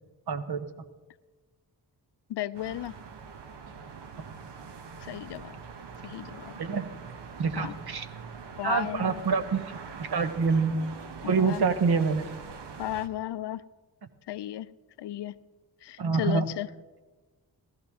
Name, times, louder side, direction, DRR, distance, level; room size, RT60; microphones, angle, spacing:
voice 1, 0.3-0.7 6.6-6.9 7.4-8.1 8.6-10.8 11.2-12.3 16.0-16.5, right 5 dB, 65° right, 9 dB, 1.1 m, -26 dB
voice 2, 2.3-3.0 5.0-5.5 6.0-6.6 7.6-7.8 8.6-9.2 11.2-11.6 12.8-13.6 14.3-14.7 15.0-15.4 15.8-16.7, left 13 dB, 80° left, 17 dB, 0.5 m, -34 dB
sound 1, 2.5-13.1, right 5 dB, 90° right, 1.0 m, -44 dB
15.5 x 14.0 x 3.6 m, 1.3 s
cardioid pair, 55°, 41 cm